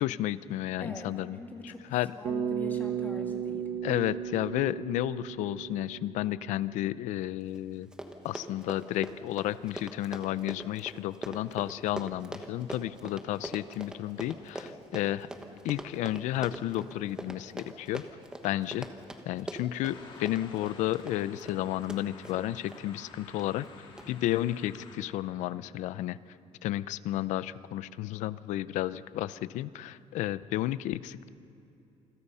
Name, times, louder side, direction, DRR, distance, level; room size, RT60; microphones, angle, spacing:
voice 1, 0.0-1.4 1.6-2.1 3.8-7.9 8.2-15.3 15.6-18.0 18.4-18.9 19.3-23.7 24.1-26.2 26.6-31.3, left 14 dB, 80° left, 16 dB, 0.6 m, -32 dB
voice 2, 0.8-1.9 2.2-3.7, left 3 dB, 15° left, 2 dB, 2.2 m, -42 dB
Bass guitar, 2.2-6.6, right 9 dB, 60° right, 1.5 m, -35 dB
Run, 7.5-7.6 7.8-22.8 23.4-23.7 24.0-24.1, right 1 dB, 5° right, 1.2 m, -42 dB
sound 1, 19.8-25.0, left 3 dB, 45° left, 4.1 m, -51 dB
28.0 x 21.5 x 5.6 m, 2.8 s
cardioid pair, 170°, 12 cm